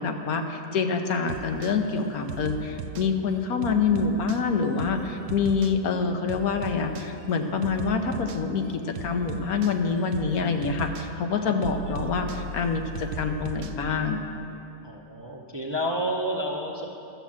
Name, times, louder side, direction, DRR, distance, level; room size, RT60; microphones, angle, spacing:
voice 1, 0.0-14.2, left 5 dB, 80° left, 5 dB, 1.3 m, -26 dB
sound 1, 1.3-1.7 2.3-3.1 3.6-4.4 4.8-5.0 5.3-5.7 6.3-7.1 7.6-8.4 8.9-9.7 10.1-10.3 10.6-11.1 11.6-13.8, right 4 dB, 75° right, 1.1 m, -37 dB
voice 2, 14.8-16.9, equal, 25° right, -1 dB, 0.7 m, -30 dB
12.5 x 7.4 x 7.4 m, 2.8 s
omnidirectional pair, 1.6 m